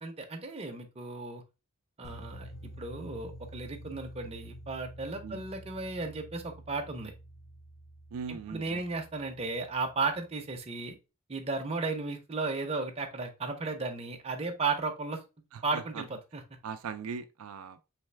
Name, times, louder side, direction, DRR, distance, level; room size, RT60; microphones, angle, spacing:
voice 1, 0.0-1.4 2.0-7.1 8.3-11.0 11.3-15.2 15.6-16.1 16.3-16.4, right 3 dB, 25° right, 0.6 m, -35 dB
sound 1, 2.0-10.2, equal, 30° left, 0.6 m, -49 dB
voice 2, 8.1-8.9 15.5-16.0 16.6-17.8, right 6 dB, 80° right, 0.4 m, -40 dB
4.1 x 3.2 x 3.2 m
head